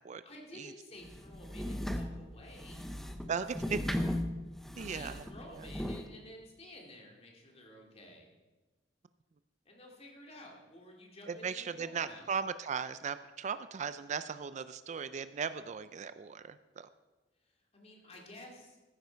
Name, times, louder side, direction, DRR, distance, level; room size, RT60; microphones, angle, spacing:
voice 1, 0.2-2.9 4.7-8.3 9.7-12.3 17.4-18.8, left 1 dB, 35° left, 0 dB, 2.4 m, -52 dB
sound 1, 1.0-6.1, left 1 dB, ahead, 0.7 m, -37 dB
voice 2, 3.3-4.0 4.8-5.2 5.5-5.7 11.3-16.9, right 6 dB, 40° right, 13 dB, 0.4 m, -37 dB
14.5 x 9.4 x 4.6 m, 1.2 s
head